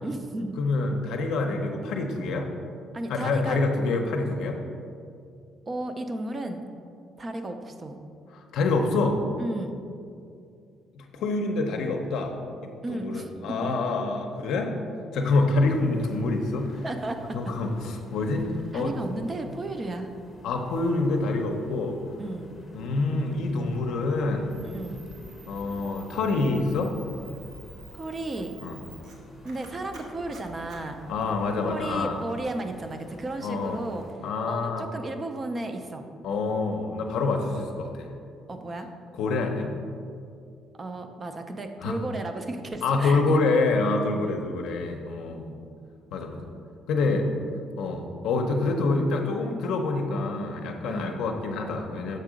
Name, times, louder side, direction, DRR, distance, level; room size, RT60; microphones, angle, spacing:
voice 1, 0.0-0.6 2.9-3.6 5.7-6.6 7.2-8.0 9.4-9.8 12.8-13.8 16.8-17.4 18.7-20.1 22.2-22.6 24.6-25.1 27.9-28.5 29.4-31.0 31.7-34.0 34.5-36.0 38.5-38.9 40.8-43.4 44.0-44.4 47.0-47.6 50.9-51.2, right 2 dB, 20° right, 6 dB, 0.4 m, -34 dB
voice 2, 0.6-2.5 3.1-4.6 8.3-9.2 11.0-12.4 12.6-14.8 15.1-16.8 17.3-18.5 18.7-18.9 20.4-22.0 22.7-24.5 25.5-26.9 28.6-28.8 31.1-32.2 33.4-33.8 34.2-34.9 36.2-38.1 39.1-39.7 41.8-41.9 42.8-45.6 46.1-46.4 46.9-47.3 47.8-52.2, left 3 dB, 70° left, 3 dB, 0.5 m, -26 dB
sound 1, 15.6-34.1, left 1 dB, 15° left, 0.7 m, -49 dB
Camera, 24.5-31.6, right 4 dB, 90° right, 1.0 m, -52 dB
6.6 x 3.7 x 5.0 m, 2.5 s
cardioid pair, 165°, 0 cm